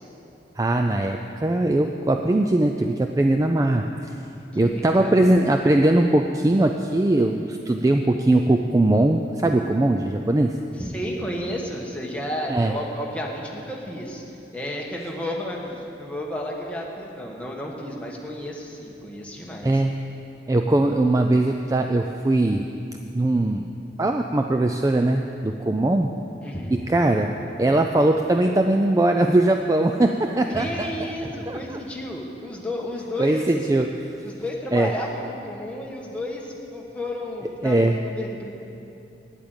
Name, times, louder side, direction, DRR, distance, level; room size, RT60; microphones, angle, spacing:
voice 1, 0.6-4.1 4.5-10.6 12.5-12.7 19.6-20.1 20.5-22.7 23.1-23.7 24.0-26.1 26.7-30.9 31.5-31.8 33.2-33.9 34.7-34.9 37.6-38.0, right 1 dB, 20° right, 4 dB, 0.3 m, -20 dB
voice 2, 4.5-5.3 10.8-19.8 26.4-26.9 30.5-33.5 34.2-38.5, left 1 dB, 5° left, -2 dB, 1.3 m, -32 dB
9.1 x 8.5 x 8.9 m, 2.8 s
head